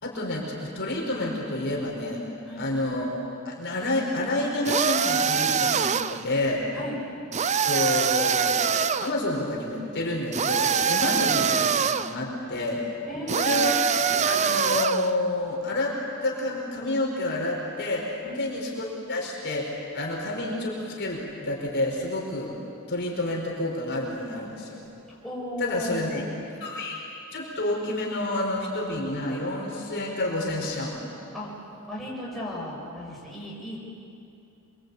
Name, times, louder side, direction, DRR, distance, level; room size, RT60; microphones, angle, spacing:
voice 1, 0.0-2.2 2.6-6.6 7.7-11.5 11.8-12.8 13.3-13.7 14.3-18.1 18.4-22.5 22.9-24.9 25.6-26.2 26.6-27.0 27.3-31.0, left 1 dB, 55° left, -1 dB, 5.1 m, -29 dB
sound 1, 4.7-6.2 7.3-9.1 10.3-12.1 13.3-15.1, right 7 dB, 30° right, 0.6 m, -24 dB
voice 2, 13.1-13.8 18.2-18.5 25.1-26.3 31.3-31.5 31.9-33.9, equal, ahead, -6 dB, 7.6 m, -36 dB
27.5 x 24.5 x 8.7 m, 2.7 s
head